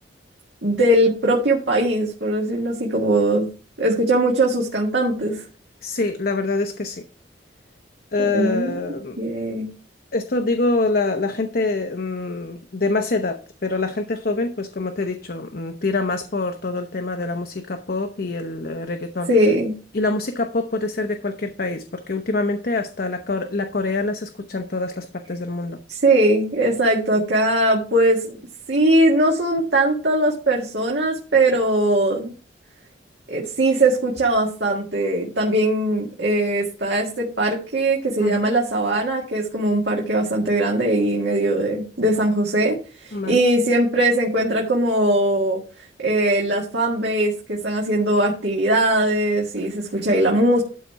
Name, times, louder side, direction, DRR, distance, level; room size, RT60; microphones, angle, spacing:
voice 1, 0.6-3.5 3.8-5.4 8.2-8.8 9.2-9.7 19.3-19.7 25.9-28.4 28.7-32.3 33.3-42.8 43.0-45.6 46.0-50.6, right 1 dB, 70° right, 1.8 m, -20 dB
voice 2, 5.8-7.0 8.1-9.2 10.1-19.3 19.9-25.8 38.2-38.4 43.1-43.4, left 3 dB, 55° left, 0.8 m, -25 dB
12.0 x 4.1 x 5.7 m
head